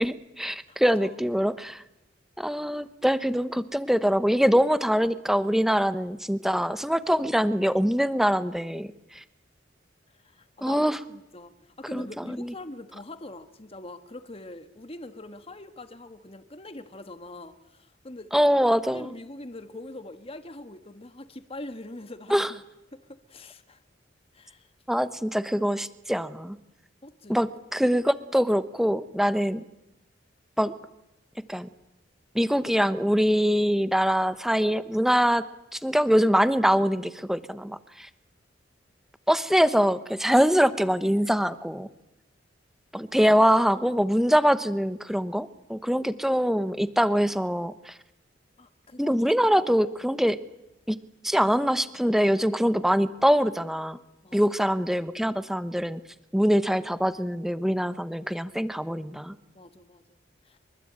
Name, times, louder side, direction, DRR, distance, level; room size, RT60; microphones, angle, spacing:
voice 1, 0.0-1.8 2.4-9.2 10.6-11.0 11.9-12.5 18.3-19.1 22.3-22.5 24.9-26.6 27.3-29.6 30.6-30.7 31.5-31.7 32.3-35.4 35.7-38.1 39.3-41.9 42.9-47.9 49.0-50.4 50.9-51.0 51.2-54.0 54.3-56.0 56.3-59.3, equal, ahead, 13 dB, 1.1 m, -24 dB
voice 2, 0.7-1.2 10.1-18.3 18.9-22.6 22.9-23.8 24.3-24.7 27.0-27.4 48.6-49.6 54.2-54.7 59.5-60.0 60.4-60.6, left 1 dB, 30° left, 9 dB, 1.6 m, -43 dB
24.5 x 23.5 x 8.9 m, 0.91 s
head